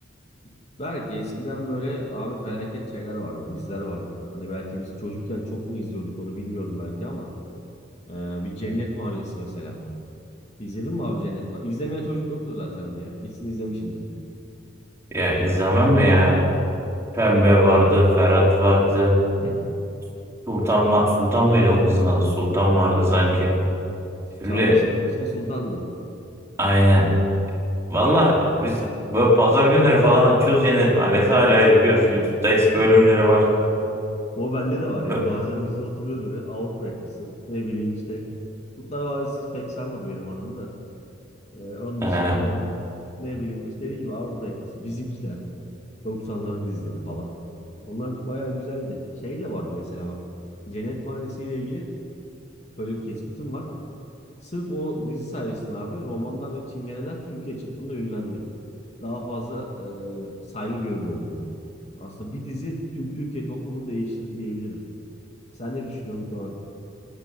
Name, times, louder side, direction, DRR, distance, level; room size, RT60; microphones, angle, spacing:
voice 1, 0.8-7.3 8.1-9.8 10.6-14.0 19.4-19.7 22.8-23.1 24.4-25.8 34.4-38.2 38.8-40.7 41.5-42.6 43.2-45.4 46.0-47.3 47.9-50.2 50.7-51.9 52.8-53.7 54.4-58.4 59.0-61.4 62.0-64.8 65.6-66.5, equal, 35° left, -1 dB, 2.4 m, -31 dB
voice 2, 15.1-16.4 17.1-19.2 20.5-23.5 24.4-24.7 26.6-27.1 27.9-28.8 29.1-33.5 35.1-35.2 42.0-42.4, equal, 15° right, -5 dB, 4.7 m, -18 dB
27.0 x 10.5 x 9.4 m, 2.8 s
head